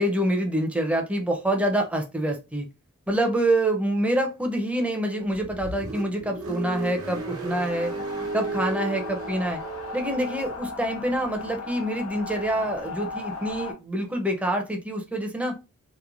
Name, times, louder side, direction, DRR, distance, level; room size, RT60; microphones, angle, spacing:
voice 1, 0.0-2.6 3.1-7.9 8.3-9.6 9.9-15.5, right 1 dB, 5° right, 3 dB, 0.5 m, -26 dB
Car, 5.2-10.7, right 3 dB, 90° right, 0.8 m, -34 dB
sound 1, 7.2-13.7, left 4 dB, 85° left, 0.7 m, -37 dB
2.9 x 2.1 x 2.4 m, 0.28 s
head